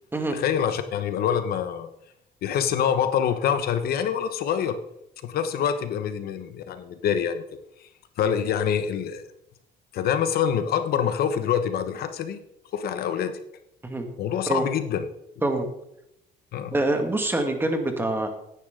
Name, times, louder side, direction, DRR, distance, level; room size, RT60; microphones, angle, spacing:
voice 1, 0.3-1.9 2.4-4.8 5.2-7.9 8.2-9.2 9.9-12.4 12.7-13.4 14.2-15.1 16.5-16.7, left 8 dB, 65° left, 10 dB, 1.1 m, -26 dB
voice 2, 16.7-18.3, right 2 dB, 15° right, 5 dB, 2.1 m, -25 dB
16.0 x 10.0 x 3.8 m, 0.80 s
cardioid pair, 110°, 17 cm